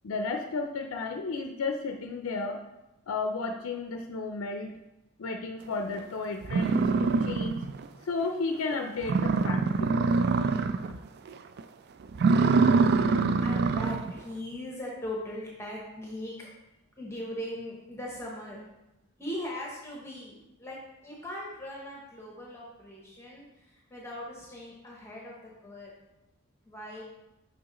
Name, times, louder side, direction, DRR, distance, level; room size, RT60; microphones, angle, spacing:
voice 1, 0.0-2.6 3.1-4.7 5.2-7.6 8.1-10.0, left 3 dB, 85° left, 4 dB, 0.5 m, -33 dB
sound 1, 6.0-6.1 6.5-7.9 8.2-8.3 8.7-8.8 9.0-11.0 11.3-11.6 12.1-14.1, right 4 dB, 50° right, 0.3 m, -24 dB
voice 2, 12.8-16.5 17.0-18.6 19.2-25.9 26.6-27.0, left 1 dB, 15° left, -3 dB, 0.9 m, -40 dB
6.2 x 5.6 x 3.0 m, 0.96 s
head